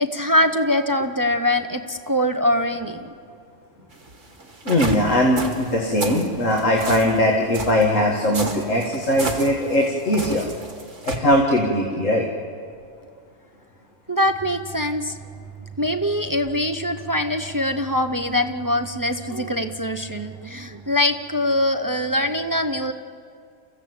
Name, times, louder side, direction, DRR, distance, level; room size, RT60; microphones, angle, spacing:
voice 1, 0.0-3.1 14.1-15.2 15.8-22.9, left 1 dB, 20° right, 6 dB, 0.6 m, -23 dB
sound 1, 3.9-11.2, right 2 dB, 70° right, 2.5 m, -32 dB
voice 2, 4.6-10.5 11.1-12.2, left 1 dB, 80° left, -1 dB, 2.3 m, -20 dB
29.5 x 15.0 x 7.9 m, 2.3 s
omnidirectional pair, 1.3 m